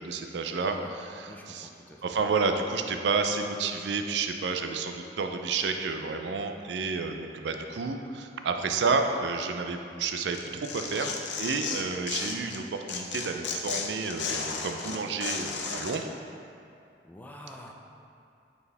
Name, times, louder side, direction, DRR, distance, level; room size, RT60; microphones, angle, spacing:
voice 1, 0.0-1.7 2.0-16.1, right 4 dB, 75° right, 6 dB, 0.4 m, -30 dB
voice 2, 0.6-0.9 1.3-2.2 17.0-17.7, left 1 dB, 10° left, 0 dB, 0.4 m, -46 dB
Tearing, 10.3-12.6 12.9-16.0, left 5 dB, 85° left, 0.6 m, -34 dB
6.9 x 4.4 x 3.4 m, 2.5 s
head